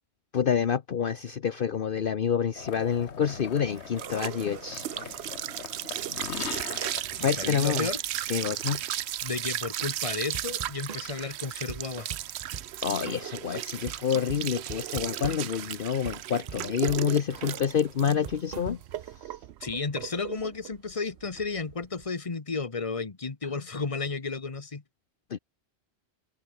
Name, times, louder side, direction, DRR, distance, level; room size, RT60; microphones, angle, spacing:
voice 1, 0.3-5.2 7.1-7.9 8.3-8.8 12.8-18.8 19.2-19.4 25.3-25.4, left 7 dB, 55° left, 1.0 m, -28 dB
sound 1, 2.6-7.9, left 7 dB, 85° left, 1.4 m, -41 dB
sound 2, 3.0-22.0, right 12 dB, 75° right, 0.9 m, -35 dB
voice 2, 7.2-8.0 9.2-12.1 19.6-24.8, left 4 dB, 30° left, 1.4 m, -33 dB
sound 3, 10.3-11.1 11.5-12.8 13.1-13.4 13.6-15.5 15.8-17.1 17.4-17.7 18.0-19.0, right 6 dB, 40° right, 1.0 m, -41 dB
omnidirectional pair, 1.1 m